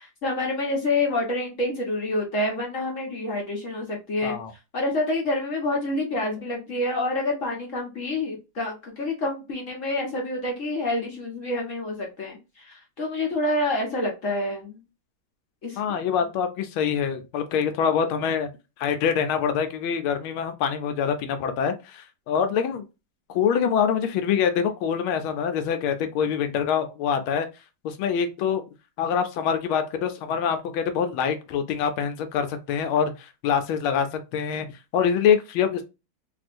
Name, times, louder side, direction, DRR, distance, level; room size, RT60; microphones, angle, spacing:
voice 1, 0.0-4.3 4.7-14.8 15.6-15.8, left 2 dB, 50° left, -1 dB, 1.0 m, -27 dB
voice 2, 15.8-18.5 18.8-22.8 23.3-27.5 27.8-28.6 29.0-35.8, left 7 dB, 80° left, 8 dB, 1.4 m, -25 dB
3.5 x 2.6 x 2.5 m, 0.27 s
omnidirectional pair, 2.3 m